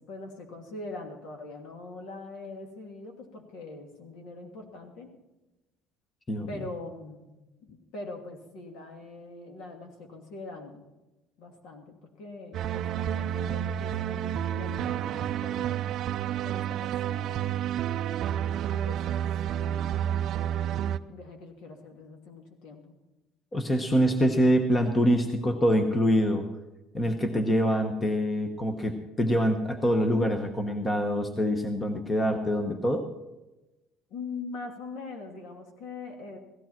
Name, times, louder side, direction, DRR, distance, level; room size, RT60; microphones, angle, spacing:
voice 1, 0.1-5.1 6.5-10.8 11.4-15.8 16.4-22.9 30.1-30.3 34.1-36.4, left 3 dB, 65° left, 3 dB, 2.8 m, -43 dB
sound 1, 12.5-21.0, right 10 dB, 40° right, 0.5 m, -30 dB
voice 2, 23.5-26.4 26.9-33.0, equal, 15° left, 6 dB, 0.9 m, -25 dB
17.0 x 14.5 x 4.5 m, 1.0 s
cardioid pair, 180°, 0 cm